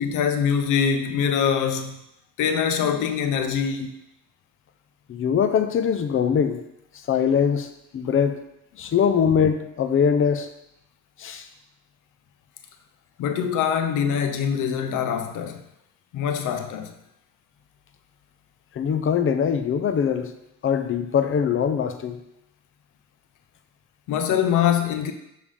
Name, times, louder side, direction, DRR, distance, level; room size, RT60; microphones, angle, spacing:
voice 1, 0.0-2.0 2.4-4.0 13.2-15.6 16.1-16.9 24.1-25.1, left 8 dB, 85° left, 0.7 m, -23 dB
voice 2, 5.1-6.6 7.1-8.4 8.8-10.5 11.2-11.5 18.7-20.3 20.6-22.2, left 7 dB, 45° left, 0.6 m, -22 dB
7.4 x 3.5 x 4.9 m
cardioid pair, 90°, 30 cm